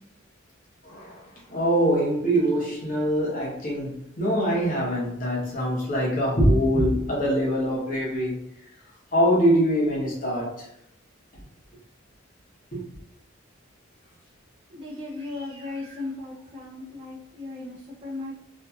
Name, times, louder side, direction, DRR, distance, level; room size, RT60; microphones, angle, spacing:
voice 1, 0.8-8.4 9.1-10.7 12.7-12.8, equal, 40° left, 1.0 m, -24 dB
voice 2, 14.7-18.4, left 2 dB, 25° right, 0.6 m, -36 dB
2.8 x 2.6 x 2.3 m
head